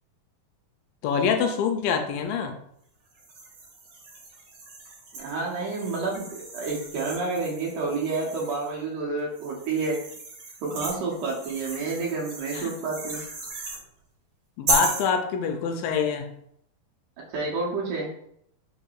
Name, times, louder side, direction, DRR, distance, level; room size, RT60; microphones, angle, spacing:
voice 1, 1.0-2.6 12.5-12.7 14.6-16.3, left 6 dB, 80° left, 5 dB, 2.1 m, -25 dB
sound 1, 3.2-8.7 9.3-13.8 14.7-15.1, right 3 dB, 55° right, 2.3 m, -35 dB
voice 2, 5.1-10.0 10.6-13.2 17.3-18.1, right 3 dB, 70° right, -3 dB, 2.1 m, -29 dB
5.5 x 3.4 x 2.3 m, 0.71 s
omnidirectional pair, 4.2 m